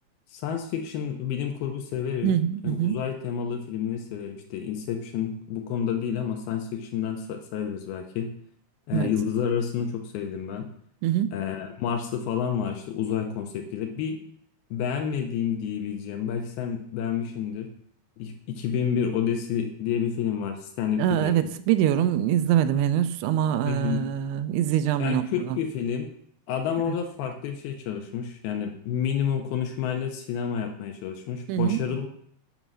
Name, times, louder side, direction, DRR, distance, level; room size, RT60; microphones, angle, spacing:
voice 1, 0.3-8.3 8.9-10.7 11.3-14.2 14.7-17.7 18.2-21.3 23.7-24.0 25.0-26.1 26.5-32.1, left 8 dB, 80° left, 4 dB, 2.6 m, -29 dB
voice 2, 2.2-3.0 8.9-9.1 11.0-11.3 21.0-25.6 26.9-27.0 31.5-32.0, right 11 dB, 85° right, 12 dB, 2.6 m, -24 dB
9.0 x 5.5 x 6.1 m, 0.66 s
omnidirectional pair, 4.7 m